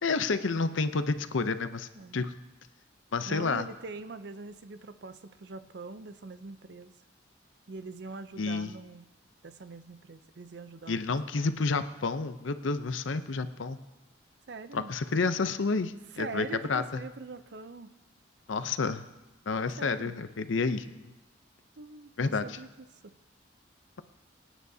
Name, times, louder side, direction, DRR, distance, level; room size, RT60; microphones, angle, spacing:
voice 1, 0.0-2.4 3.1-3.7 8.4-8.7 10.9-13.8 14.7-17.0 18.5-19.0 19.5-21.0 22.2-22.6, left 4 dB, 80° left, 11 dB, 0.6 m, -30 dB
voice 2, 2.0-2.3 3.3-6.9 7.7-9.1 9.4-11.5 14.5-14.9 16.1-17.9 19.8-20.1 21.8-23.1, right 3 dB, 60° right, 11 dB, 0.6 m, -43 dB
24.0 x 9.1 x 2.8 m, 1.0 s
head